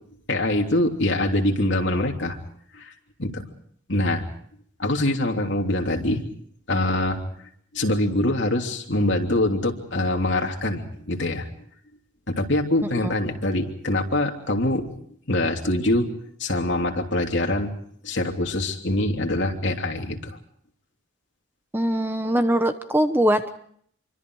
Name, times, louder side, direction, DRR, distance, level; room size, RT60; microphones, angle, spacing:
voice 1, 0.3-2.4 2.7-2.9 3.2-3.4 3.9-4.3 4.8-6.2 6.7-7.2 7.7-11.5 12.3-14.9 15.3-16.1 16.4-17.7 18.0-20.4, left 1 dB, 60° left, 2 dB, 3.2 m, -24 dB
voice 2, 21.7-23.5, right 1 dB, 10° right, 8 dB, 1.0 m, -21 dB
27.0 x 24.5 x 4.8 m, 0.63 s
head